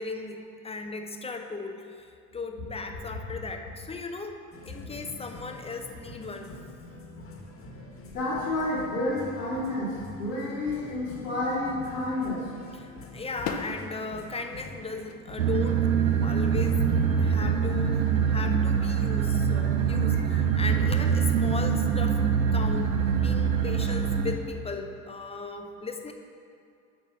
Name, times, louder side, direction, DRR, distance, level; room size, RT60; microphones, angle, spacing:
voice 1, 0.0-4.4 4.7-6.5 12.7-15.9 16.2-16.8 17.2-22.3 22.5-26.1, left 3 dB, 15° left, 5 dB, 0.6 m, -37 dB
sound 1, 4.5-24.0, left 2 dB, 30° left, 1.4 m, -45 dB
voice 2, 8.1-9.9 10.2-12.4, left 2 dB, 90° left, -12 dB, 2.0 m, -29 dB
sound 2, 12.1-12.2 12.7-13.0 13.4-13.9 14.7-15.4 16.2-16.3 16.7-16.9, left 6 dB, 55° left, 0.8 m, -37 dB
sound 3, 15.4-24.4, right 7 dB, 85° right, 0.7 m, -24 dB
7.4 x 5.4 x 6.0 m, 2.4 s
hypercardioid pair, 70°, 43 cm